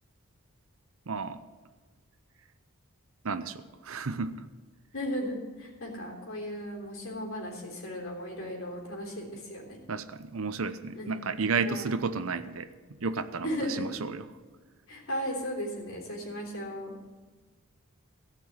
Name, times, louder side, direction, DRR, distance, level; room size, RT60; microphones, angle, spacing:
voice 1, 1.1-1.4 3.2-4.4 9.9-12.7 13.0-14.3, right 4 dB, 70° right, 11 dB, 0.7 m, -32 dB
voice 2, 4.9-9.8 10.9-11.1 11.7-12.0 13.4-13.9 14.9-17.0, equal, 70° left, -1 dB, 3.4 m, -36 dB
15.5 x 6.0 x 8.9 m, 1.4 s
head